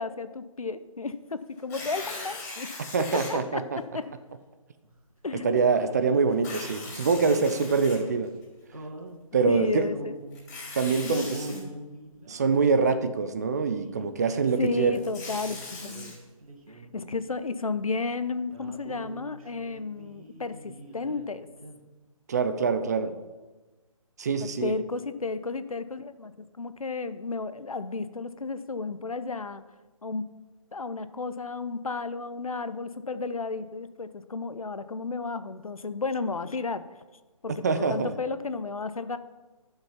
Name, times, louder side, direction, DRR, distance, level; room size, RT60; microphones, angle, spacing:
voice 1, 0.0-2.7 3.0-4.1 5.2-5.6 7.2-7.4 9.5-10.2 11.0-11.7 14.0-16.2 16.7-21.5 24.4-29.6 30.0-30.3 30.7-36.8 37.4-39.2, left 4 dB, 75° left, 12 dB, 0.7 m, -33 dB
Tearing, 1.6-3.3 4.0-4.1 6.3-8.4 10.3-11.6 14.7-16.1, left 3 dB, 25° left, 3.5 m, -40 dB
voice 2, 2.9-3.8 5.4-8.3 9.3-9.9 10.7-11.4 12.3-15.0 22.3-23.2 24.2-24.7 37.6-38.1, right 4 dB, 30° right, 11 dB, 0.5 m, -25 dB
sound 1, 4.8-5.3 5.7-7.5 8.7-10.6 11.1-12.9 13.4-16.1 16.4-17.6 17.9-18.0 18.4-21.3 21.6-21.8, right 2 dB, 75° right, 2.1 m, -45 dB
11.0 x 5.7 x 5.7 m, 1.2 s
figure-of-eight pair, 145°, 18 cm